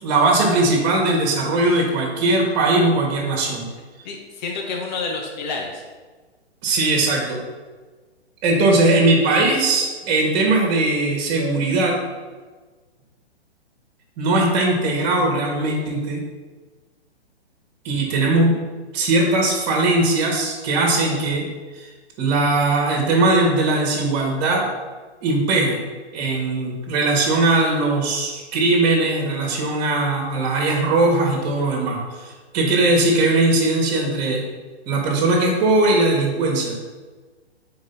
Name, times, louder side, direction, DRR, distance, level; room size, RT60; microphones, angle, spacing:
voice 1, 0.0-3.7 6.6-7.4 8.4-11.9 14.2-16.2 17.8-18.5 18.9-21.5 21.7-21.9 22.2-24.6 25.2-25.8 26.1-34.5 34.9-36.8, right 2 dB, 40° right, 0 dB, 2.3 m, -19 dB
voice 2, 4.0-5.8, left 4 dB, 40° left, 1 dB, 1.5 m, -29 dB
5.2 x 4.7 x 5.7 m, 1.4 s
hypercardioid pair, 130°, 33 cm